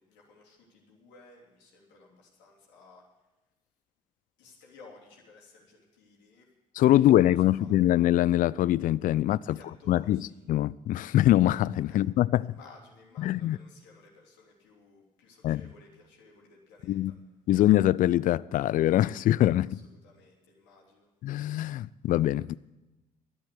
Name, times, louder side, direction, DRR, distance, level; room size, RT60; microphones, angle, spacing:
voice 1, 0.0-3.0 4.4-6.4 6.9-7.7 9.2-10.4 11.9-12.0 12.4-17.1 19.7-21.1, left 3 dB, 65° left, 3.3 m, -56 dB
voice 2, 6.8-12.5 13.2-13.6 15.4-15.6 16.8-17.1 17.5-19.8 21.2-22.6, left 13 dB, 45° left, 0.4 m, -24 dB
12.0 x 10.5 x 8.2 m
figure-of-eight pair, 50°, 20 cm